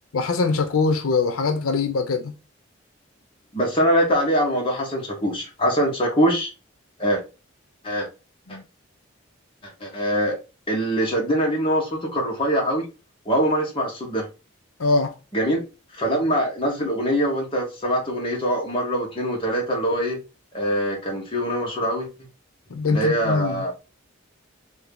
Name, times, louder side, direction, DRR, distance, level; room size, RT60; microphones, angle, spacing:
voice 1, 0.1-2.3 8.5-8.6 14.8-15.1 22.7-23.6, left 4 dB, 90° left, 0.5 m, -23 dB
voice 2, 3.5-6.5 7.0-7.2 7.8-8.1 8.5-8.6 9.6-10.4 10.7-12.8 13.2-14.3 15.3-15.6 15.9-20.2 20.5-22.1 22.9-23.7, equal, 25° left, 1.1 m, -23 dB
2.8 x 2.7 x 3.4 m
head